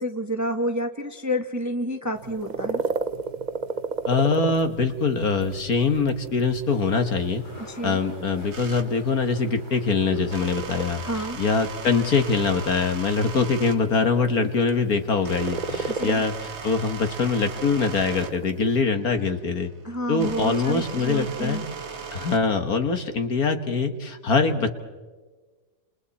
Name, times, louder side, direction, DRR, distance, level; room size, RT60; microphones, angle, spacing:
voice 1, 0.0-2.8 7.7-8.0 11.0-11.4 15.9-16.2 19.8-21.6, equal, 10° right, 5 dB, 1.4 m, -29 dB
sound 1, 2.1-18.8, right 4 dB, 65° right, 0.4 m, -34 dB
voice 2, 4.1-7.4 7.8-19.7 20.1-21.6 22.1-24.7, left 4 dB, 50° left, 7 dB, 1.8 m, -23 dB
sound 2, 6.7-12.9, equal, 25° left, 5.2 m, -45 dB
sound 3, 8.5-8.9 10.3-13.8 14.4-22.4, right 6 dB, 40° right, 1.6 m, -38 dB
29.5 x 28.5 x 4.2 m, 1.3 s
omnidirectional pair, 2.1 m